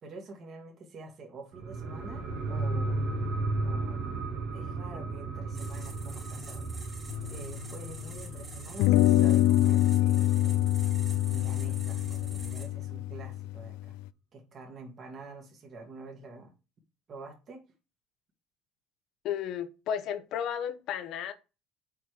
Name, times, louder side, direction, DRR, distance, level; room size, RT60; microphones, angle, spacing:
voice 1, 0.0-3.0 3.6-6.7 7.3-10.7 11.3-13.9 14.3-16.5 17.1-17.6, right 3 dB, 40° right, 1.9 m, -47 dB
sound 1, 1.5-10.6 11.0-11.1, right 2 dB, 75° right, 1.9 m, -35 dB
sound 2, 5.5-12.7, right 3 dB, 25° right, 2.4 m, -45 dB
sound 3, 7.1-8.3 8.8-14.0, left 14 dB, 85° left, 0.3 m, -26 dB
voice 2, 19.2-21.3, left 9 dB, 60° left, 0.8 m, -33 dB
5.8 x 4.4 x 4.9 m
cardioid pair, 115°, 0 cm